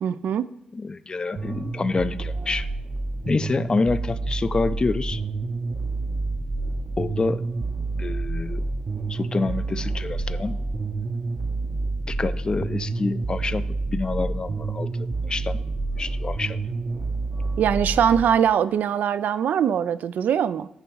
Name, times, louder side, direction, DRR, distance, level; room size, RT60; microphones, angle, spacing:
voice 1, 0.0-0.5 17.6-20.7, right 8 dB, 80° right, 16 dB, 0.3 m, -22 dB
voice 2, 0.8-2.7 3.3-5.2 7.0-7.4 8.0-8.7 9.1-10.6 12.1-14.9 15.2-15.6 16.0-16.6, left 3 dB, 30° left, 13 dB, 0.4 m, -27 dB
sound 1, 1.4-18.2, right 3 dB, 50° right, 0.7 m, -29 dB
9.0 x 3.5 x 6.9 m, 0.80 s
cardioid pair, 75°, 3 cm